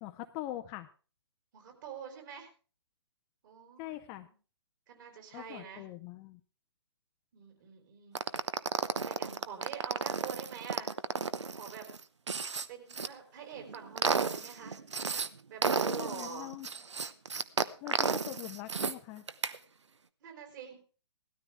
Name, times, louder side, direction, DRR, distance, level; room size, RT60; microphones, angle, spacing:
voice 1, 0.0-0.9 3.8-4.3 5.3-6.4 15.9-16.7 17.8-19.3, left 15 dB, 20° left, 8 dB, 0.5 m, -42 dB
voice 2, 1.5-2.5 3.4-4.3 4.9-5.9 7.3-8.2 9.1-10.9 11.5-11.9 12.7-14.8 15.5-16.5 20.2-20.8, right 7 dB, 45° right, 4 dB, 4.0 m, -46 dB
sound 1, 8.1-13.1 13.6-15.3 15.6-18.9 19.3-19.6, right 5 dB, 85° right, 0.9 m, -33 dB
17.5 x 13.0 x 3.4 m, 0.36 s
hypercardioid pair, 145°, 15 cm